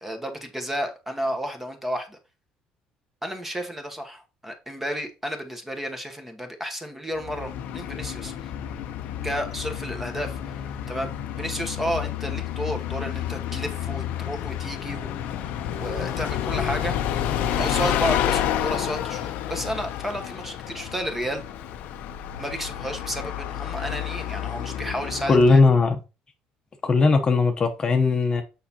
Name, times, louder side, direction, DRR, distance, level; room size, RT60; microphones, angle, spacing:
voice 1, 0.0-2.2 3.2-8.5 9.2-15.1 15.8-16.9 17.6-21.4 22.4-25.6, equal, 10° right, 1.1 m, -32 dB
Bus, 7.2-25.7, left 10 dB, 75° left, 0.6 m, -30 dB
voice 2, 25.3-26.0 26.8-28.4, left 3 dB, 30° left, 0.9 m, -18 dB
6.5 x 5.4 x 2.9 m
cardioid pair, 120°, 3 cm